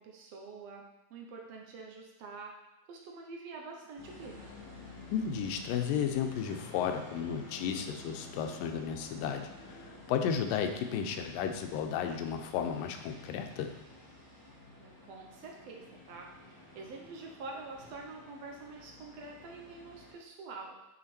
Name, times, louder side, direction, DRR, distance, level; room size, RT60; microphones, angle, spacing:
voice 1, 0.0-2.6 2.9-4.5 14.8-20.7, right 3 dB, 75° right, 0 dB, 1.5 m, -46 dB
sound 1, 4.0-20.1, left 2 dB, 10° left, 1.0 m, -51 dB
voice 2, 5.1-13.7, left 7 dB, 90° left, 6 dB, 2.4 m, -33 dB
8.8 x 5.1 x 4.3 m, 0.94 s
omnidirectional pair, 3.8 m